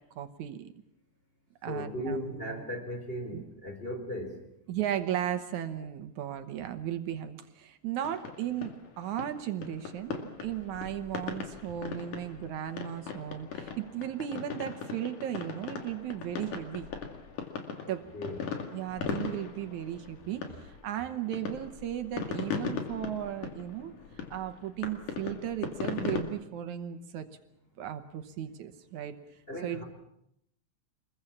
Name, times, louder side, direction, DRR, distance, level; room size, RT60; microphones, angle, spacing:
voice 1, 0.2-0.7 1.6-2.6 3.3-3.4 4.7-16.9 17.9-18.1 18.7-23.9 24.3-27.3 27.8-29.2 29.6-29.8, right 11 dB, 75° right, 9 dB, 2.5 m, -36 dB
voice 2, 1.7-4.4 17.8-18.4 29.5-29.8, equal, 15° left, 4 dB, 4.2 m, -37 dB
sound 1, 8.0-26.2, left 6 dB, 90° left, 3.9 m, -39 dB
26.5 x 21.5 x 7.2 m, 0.76 s
omnidirectional pair, 3.5 m